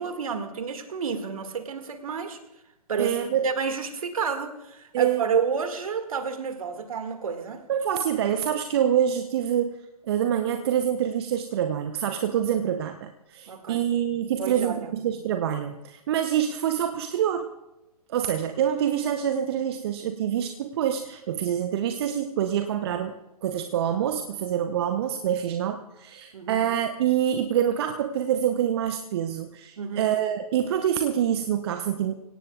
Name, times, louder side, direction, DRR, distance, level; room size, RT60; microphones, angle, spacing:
voice 1, 0.0-2.4 2.9-3.2 3.4-7.6 13.5-13.9 14.4-14.9 26.3-26.6 29.8-30.1, right 6 dB, 60° right, 7 dB, 2.1 m, -30 dB
voice 2, 3.0-3.4 4.9-5.2 7.7-9.8 10.0-17.5 18.1-23.1 23.4-32.1, right 9 dB, 40° right, 7 dB, 0.9 m, -26 dB
25.5 x 17.5 x 2.4 m, 0.93 s
figure-of-eight pair, 130°, 20 cm